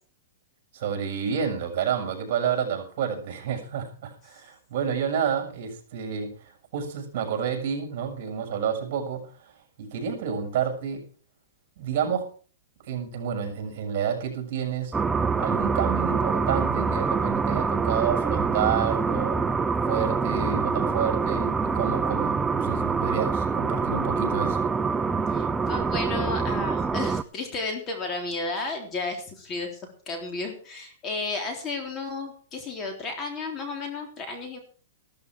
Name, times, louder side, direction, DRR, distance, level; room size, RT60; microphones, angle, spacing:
voice 1, 0.7-11.0 11.8-12.3 12.9-14.9 15.4-19.4 19.8-24.7, right 7 dB, 50° right, 4 dB, 6.8 m, -29 dB
sound 1, 14.9-27.2, right 5 dB, 10° right, 0.6 m, -25 dB
voice 2, 25.3-34.6, left 3 dB, 20° left, 3 dB, 3.6 m, -33 dB
15.5 x 13.5 x 4.8 m, 0.40 s
hypercardioid pair, 155°, 0 cm